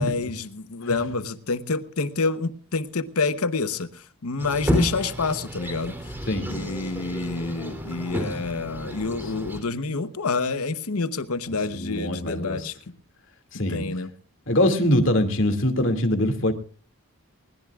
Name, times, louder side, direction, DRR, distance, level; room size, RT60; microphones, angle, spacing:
voice 1, 0.0-5.9 6.5-12.7 13.7-14.1, left 4 dB, 85° left, 1.0 m, -28 dB
sound 1, 4.4-9.6, equal, 10° right, 3.0 m, -30 dB
voice 2, 6.3-6.6 11.7-12.7 13.5-13.8 14.5-16.5, left 1 dB, 60° left, 2.4 m, -23 dB
21.5 x 20.0 x 2.5 m
head